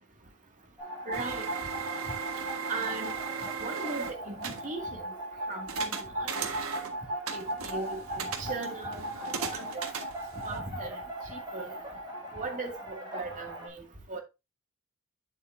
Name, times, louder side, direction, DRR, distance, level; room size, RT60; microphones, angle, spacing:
sound 1, 0.8-13.7, right 1 dB, 20° right, 5.1 m, -38 dB
voice 1, 1.1-1.4 2.7-3.1 3.6-5.0 5.5-6.5 7.3-9.0 9.5-9.7 10.4-11.0 11.3-11.7 12.3-13.8 14.1-14.2, right 3 dB, 40° right, 2.2 m, -38 dB
sound 2, 1.1-4.7 5.7-7.0 7.3-10.8, right 6 dB, 85° right, 1.5 m, -37 dB
9.2 x 7.8 x 2.6 m
head